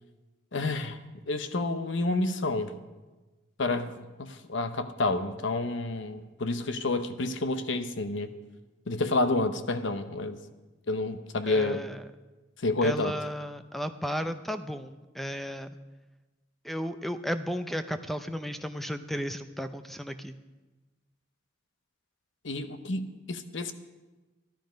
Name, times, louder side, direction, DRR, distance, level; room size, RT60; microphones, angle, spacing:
voice 1, 0.5-1.0 1.3-2.7 3.6-8.3 8.9-10.4 10.9-11.8 12.6-13.1 22.4-23.7, left 2 dB, 65° left, 10 dB, 0.9 m, -29 dB
voice 2, 11.5-12.0 12.8-15.7 16.6-20.4, equal, ahead, 9 dB, 0.5 m, -34 dB
13.0 x 12.0 x 5.1 m, 1.2 s
head